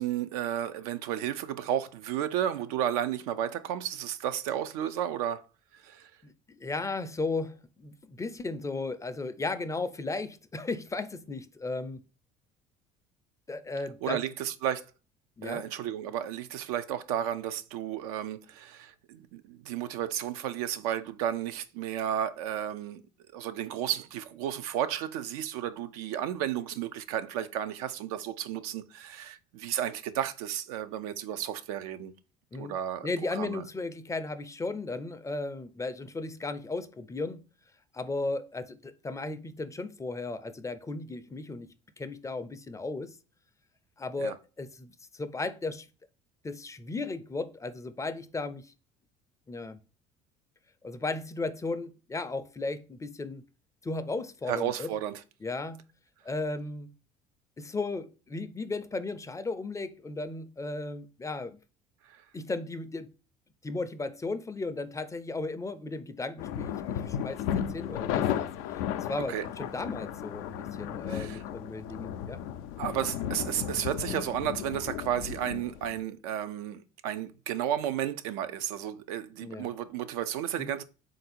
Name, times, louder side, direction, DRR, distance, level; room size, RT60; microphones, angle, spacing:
voice 1, 0.0-5.4 5.7-6.1 14.0-14.9 15.4-23.0 23.3-32.1 32.5-33.6 44.2-44.4 54.5-55.2 62.1-62.2 69.3-69.5 71.1-71.4 72.8-80.8, right 10 dB, 85° right, 0.4 m, -33 dB
voice 2, 6.2-12.0 13.5-14.2 15.4-15.6 32.5-32.7 33.0-37.4 37.9-41.7 42.0-43.2 44.0-45.9 46.4-48.7 49.5-49.8 50.8-53.4 53.8-54.9 55.4-55.8 56.2-56.9 57.6-61.6 62.3-63.1 63.6-72.4 79.4-79.7 80.6-80.7, left 3 dB, 15° left, 0.4 m, -35 dB
sound 1, 66.4-76.0, left 9 dB, 80° left, 0.4 m, -34 dB
3.7 x 2.6 x 4.1 m
supercardioid pair, 80°, 18 cm